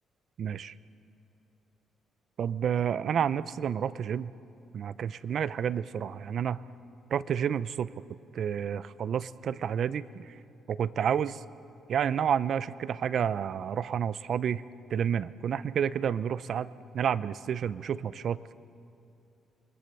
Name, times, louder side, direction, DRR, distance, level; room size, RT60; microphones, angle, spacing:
voice 1, 0.4-0.7 2.4-4.3 4.7-6.6 7.1-7.9 8.3-10.4 10.7-11.4 11.9-14.6 14.9-18.4, right 8 dB, 60° right, 16 dB, 0.6 m, -30 dB
28.0 x 21.0 x 6.9 m, 2.7 s
cardioid pair, 90°, 0 cm